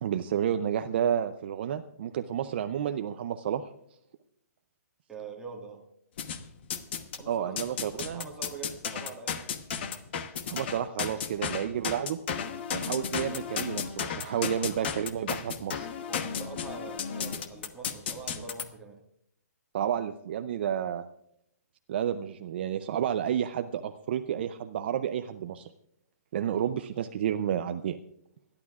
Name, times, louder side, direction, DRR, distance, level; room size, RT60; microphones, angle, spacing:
voice 1, 0.0-3.6 7.3-8.3 10.5-12.2 12.7-15.9 19.7-21.1 21.9-25.7 26.3-28.0, right 9 dB, 40° right, 8 dB, 0.6 m, -31 dB
voice 2, 5.1-5.8 7.2-7.6 8.1-9.5 16.1-19.0, right 4 dB, 5° right, -2 dB, 1.8 m, -44 dB
sound 1, 6.2-7.2 7.6-18.7, left 7 dB, 40° left, 1.0 m, -34 dB
28.5 x 11.5 x 2.4 m, 0.74 s
hypercardioid pair, 165°, 9 cm